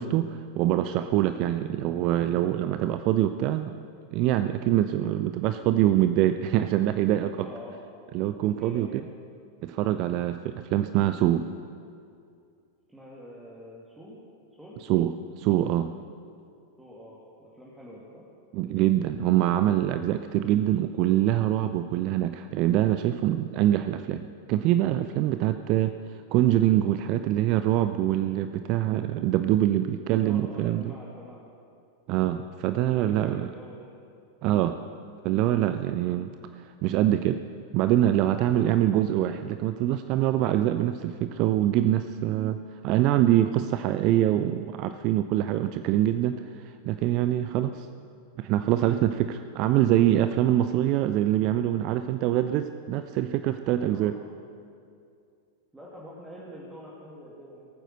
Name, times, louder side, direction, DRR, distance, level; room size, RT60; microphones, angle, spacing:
voice 1, 0.0-3.7 4.1-7.5 8.1-9.0 9.6-11.4 14.9-15.9 18.5-25.9 26.3-30.9 32.1-33.5 34.4-34.8 35.2-36.3 36.6-37.4 37.7-42.6 42.8-47.9 48.4-54.2, right 12 dB, 40° right, 10 dB, 0.4 m, -24 dB
voice 2, 7.4-7.8 8.5-8.9 12.9-14.2 14.6-14.8 16.8-18.2 30.2-31.4 32.9-33.9 38.5-38.8 53.9-54.1 55.7-57.7, equal, 10° right, -6 dB, 2.3 m, -46 dB
18.0 x 9.1 x 6.6 m, 2.4 s
figure-of-eight pair, 90°, 0 cm